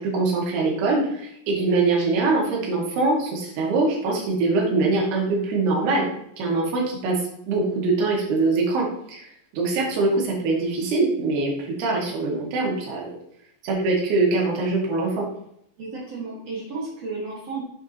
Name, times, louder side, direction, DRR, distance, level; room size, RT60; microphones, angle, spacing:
voice 1, 0.0-6.1 6.4-7.2 7.5-9.3 9.5-13.2 13.6-15.3, right 3 dB, 60° right, -2 dB, 3.3 m, -23 dB
voice 2, 15.8-17.6, right 3 dB, 85° right, -5 dB, 1.4 m, -33 dB
7.6 x 7.1 x 2.9 m, 0.74 s
omnidirectional pair, 6.0 m